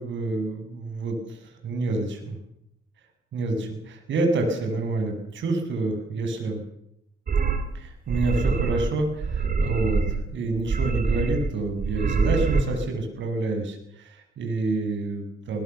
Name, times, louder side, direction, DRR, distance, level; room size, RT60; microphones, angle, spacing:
voice 1, 0.0-1.4 1.6-2.4 3.3-6.6 7.7-10.0 10.3-15.6, right 2 dB, 70° right, 5 dB, 7.1 m, -28 dB
sound 1, 7.3-7.6 8.1-8.9 9.2-10.2 10.5-11.5 11.8-12.6, right 5 dB, 45° right, 3.9 m, -25 dB
21.5 x 21.0 x 7.0 m, 0.77 s
cardioid pair, 90°, 20 cm